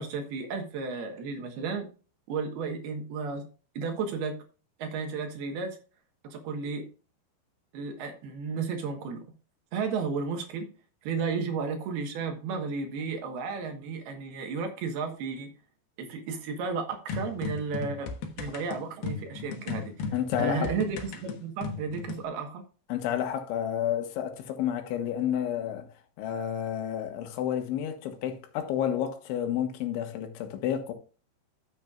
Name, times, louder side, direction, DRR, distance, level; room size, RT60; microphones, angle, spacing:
voice 1, 0.0-1.9 2.3-3.4 3.8-4.4 4.8-5.8 6.2-6.9 7.7-9.3 9.7-10.7 11.0-15.5 16.0-18.1 18.4-20.1 20.4-22.6, right 5 dB, 65° right, 3.0 m, -33 dB
sound 1, 17.1-22.2, left 4 dB, 65° left, 2.8 m, -36 dB
voice 2, 20.1-20.7 22.9-25.9 26.2-30.9, left 10 dB, 85° left, 3.7 m, -30 dB
13.5 x 7.2 x 2.4 m
omnidirectional pair, 5.3 m